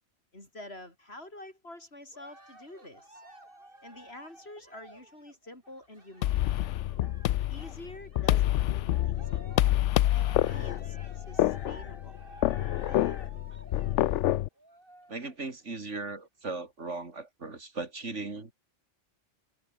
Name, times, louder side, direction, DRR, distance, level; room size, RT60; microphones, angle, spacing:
voice 1, 0.3-3.2 3.8-6.5 7.5-9.4 10.1-12.2 12.8-13.2, left 1 dB, 55° left, 7.3 m, -48 dB
Cheering, 2.1-8.4 8.8-15.4 16.0-16.1, right 1 dB, 45° right, 6.2 m, -52 dB
sound 1, 6.2-14.5, left 14 dB, 75° left, 0.9 m, -27 dB
voice 2, 15.1-18.5, right 3 dB, 75° right, 3.5 m, -38 dB
omnidirectional pair, 1.2 m